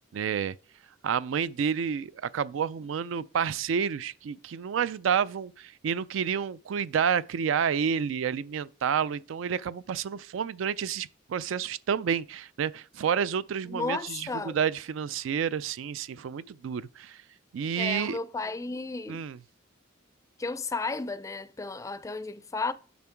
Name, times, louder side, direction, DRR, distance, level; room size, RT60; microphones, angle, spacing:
voice 1, 0.1-0.6 1.0-17.2 17.5-18.2 19.1-19.4, right 7 dB, 80° right, 0.3 m, -29 dB
voice 2, 13.7-14.6 17.8-19.2 20.4-22.7, left 3 dB, 15° left, 0.3 m, -33 dB
7.2 x 6.0 x 4.5 m
head